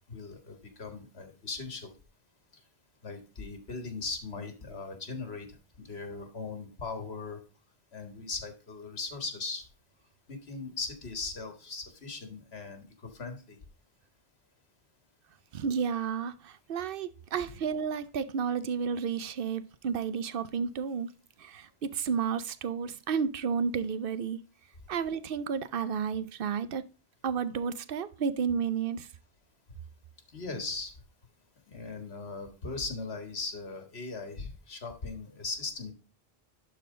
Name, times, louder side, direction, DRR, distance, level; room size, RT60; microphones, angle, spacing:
voice 1, 0.1-1.9 3.0-7.4 7.9-9.7 10.3-13.6 30.3-30.9 31.7-35.9, left 4 dB, 85° left, 1.9 m, -39 dB
voice 2, 15.5-21.1 21.4-24.4 24.9-26.8 27.2-29.1, right 6 dB, 65° right, 0.9 m, -32 dB
11.5 x 4.4 x 3.8 m
omnidirectional pair, 1.1 m